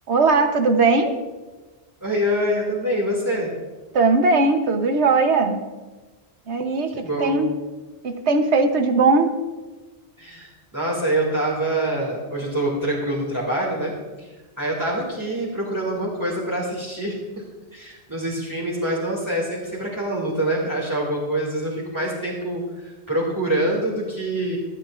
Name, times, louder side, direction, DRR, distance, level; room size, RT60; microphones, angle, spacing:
voice 1, 0.1-1.1 3.9-5.6 6.5-7.5 8.0-9.4, right 3 dB, 80° right, 6 dB, 1.3 m, -19 dB
voice 2, 2.0-3.5 6.9-7.4 10.2-13.9 14.2-14.3 14.6-17.2 17.7-24.6, right 1 dB, 15° right, -5 dB, 2.3 m, -25 dB
24.5 x 9.1 x 2.5 m, 1.2 s
omnidirectional pair, 1.1 m